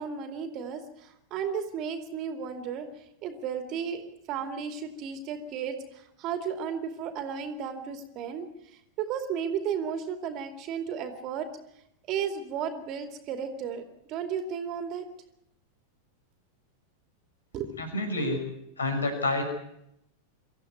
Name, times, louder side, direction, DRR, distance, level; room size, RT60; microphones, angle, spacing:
voice 1, 0.0-11.5 12.1-13.8 14.1-15.0 17.5-17.7, right 7 dB, 35° right, 6 dB, 2.6 m, -34 dB
voice 2, 17.8-18.4 18.8-19.4, left 2 dB, 75° left, 5 dB, 6.1 m, -28 dB
24.5 x 14.5 x 9.5 m, 0.79 s
figure-of-eight pair, 90°, 0 cm